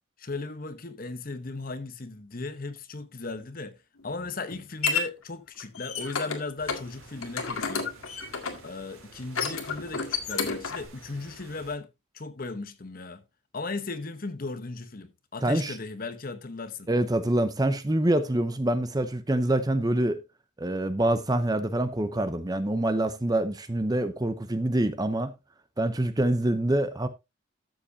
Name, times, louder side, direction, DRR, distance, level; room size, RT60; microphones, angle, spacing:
voice 1, 0.2-3.8 4.0-7.9 8.6-11.9 12.1-13.2 13.5-16.9, left 3 dB, 40° left, 0.9 m, -36 dB
sound 1, 4.0-5.0 5.6-6.4 6.7-6.8 7.2-8.7 9.2-10.9, left 5 dB, 90° left, 1.9 m, -30 dB
sound 2, 6.6-11.8, right 2 dB, 90° right, 3.7 m, -51 dB
voice 2, 15.4-15.8 16.9-20.2 20.6-25.3 25.8-27.1, right 1 dB, 20° right, 0.7 m, -26 dB
13.0 x 7.6 x 2.7 m
head